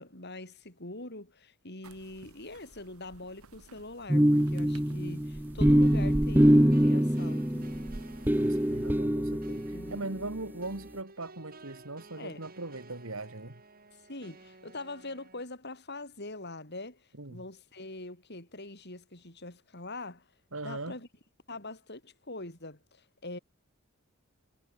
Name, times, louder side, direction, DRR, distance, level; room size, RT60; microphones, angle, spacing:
voice 1, 0.0-7.7 9.7-10.0 12.2-12.4 14.1-20.3 20.6-21.1 21.5-23.4, left 2 dB, 50° left, 7.4 m, -43 dB
sound 1, 1.8-9.0, right 2 dB, 90° right, 1.4 m, -42 dB
sound 2, 4.1-10.2, equal, 10° right, 1.2 m, -24 dB
sound 3, 5.8-15.4, right 3 dB, 45° right, 7.1 m, -54 dB
voice 2, 8.3-13.6 17.2-17.4 20.5-20.9, right 2 dB, 70° right, 2.7 m, -40 dB
head